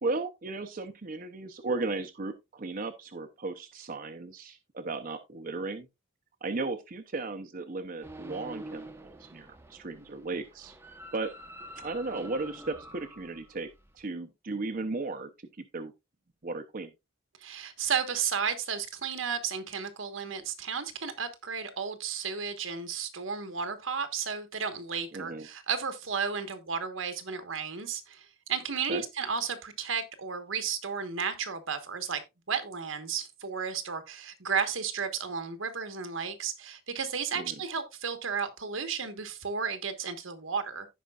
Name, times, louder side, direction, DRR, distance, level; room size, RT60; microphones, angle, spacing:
voice 1, 0.0-5.9 6.4-10.7 11.1-11.3 11.8-13.7 13.9-15.9 16.4-16.9 25.1-25.5 28.9-29.0 37.3-37.5, right 3 dB, 45° right, 0.7 m, -35 dB
sound 1, 8.0-14.1, right 1 dB, 10° right, 0.8 m, -47 dB
voice 2, 17.4-32.2 32.5-40.9, right 6 dB, 80° right, 1.4 m, -33 dB
15.5 x 5.2 x 2.4 m
head